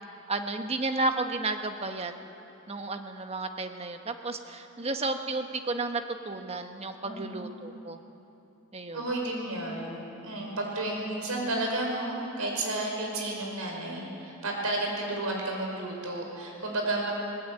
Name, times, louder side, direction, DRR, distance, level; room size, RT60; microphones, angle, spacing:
voice 1, 0.3-2.1 2.7-8.0 8.7-9.0, right 2 dB, 30° right, 6 dB, 1.2 m, -32 dB
voice 2, 7.0-7.5 8.9-17.1, right 2 dB, 85° right, 0 dB, 5.5 m, -32 dB
20.5 x 19.0 x 9.1 m, 2.9 s
head